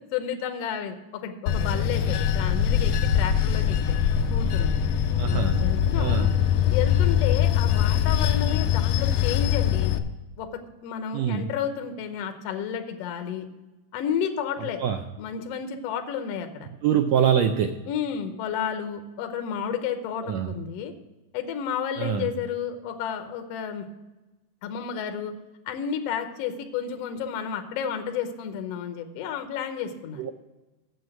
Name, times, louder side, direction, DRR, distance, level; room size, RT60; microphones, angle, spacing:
voice 1, 0.1-4.0 4.3-4.7 5.3-6.3 6.7-9.9 10.4-13.5 13.9-14.8 15.2-16.7 17.9-20.9 21.3-23.8 24.6-25.3 25.6-30.2, left 8 dB, 70° left, 6 dB, 1.6 m, -31 dB
Bell / Train, 1.5-10.0, left 9 dB, 85° left, 2.2 m, -23 dB
voice 2, 5.2-5.7 6.0-6.3 11.1-11.5 14.8-15.0 16.8-17.8 20.2-20.5 22.0-22.3 30.2-30.3, right 8 dB, 85° right, 6 dB, 1.5 m, -24 dB
7.9 x 7.4 x 7.7 m, 1.1 s
omnidirectional pair, 3.7 m